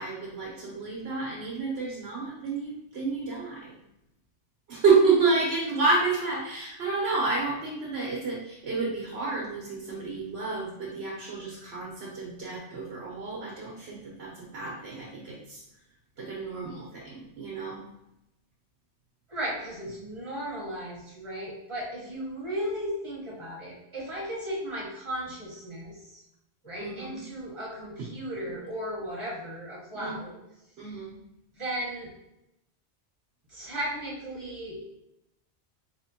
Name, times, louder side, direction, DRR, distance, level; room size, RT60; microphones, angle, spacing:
voice 1, 0.0-3.8 4.7-15.6 16.2-17.8 26.7-27.2 28.0-28.1 29.9-30.1 30.8-31.1, right 4 dB, 70° right, -4 dB, 1.2 m, -29 dB
voice 2, 19.3-26.2 26.6-30.3 30.8-31.1 31.6-32.1 33.5-34.8, equal, 25° right, -6 dB, 1.3 m, -35 dB
4.3 x 3.1 x 2.8 m, 0.86 s
omnidirectional pair, 1.2 m